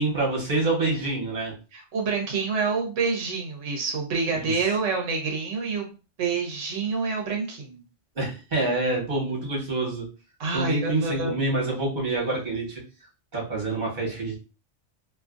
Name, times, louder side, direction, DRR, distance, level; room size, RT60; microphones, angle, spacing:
voice 1, 0.0-1.5 4.3-4.6 8.1-10.1 10.5-12.8 13.3-14.4, right 2 dB, 40° right, -3 dB, 1.3 m, -27 dB
voice 2, 1.7-7.8 10.4-11.3, right 4 dB, 90° right, 1 dB, 1.0 m, -27 dB
2.7 x 2.5 x 2.5 m, 0.32 s
omnidirectional pair, 1.2 m